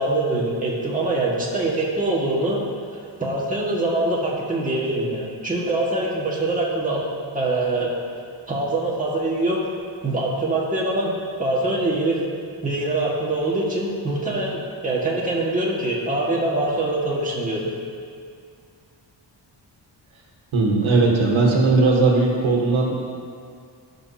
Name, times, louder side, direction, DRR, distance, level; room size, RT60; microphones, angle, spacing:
voice 1, 0.0-2.6 3.2-7.1 7.3-7.9 8.5-9.7 10.0-11.1 11.4-12.3 12.6-17.7, right 2 dB, 15° right, -5 dB, 1.8 m, -24 dB
voice 2, 20.5-23.0, right 3 dB, 85° right, -1 dB, 1.5 m, -18 dB
16.0 x 6.2 x 2.8 m, 2.3 s
wide cardioid pair, 115°, 46 cm